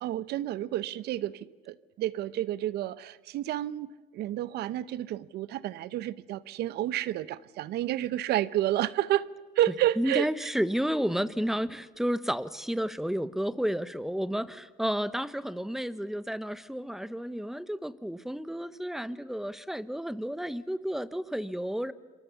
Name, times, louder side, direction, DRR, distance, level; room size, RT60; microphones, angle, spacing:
voice 1, 0.0-9.3 9.6-10.5, right 13 dB, 75° right, 0.7 m, -30 dB
voice 2, 10.0-21.9, equal, ahead, 0.9 m, -31 dB
27.5 x 23.5 x 7.0 m
cardioid pair, 110°, 17 cm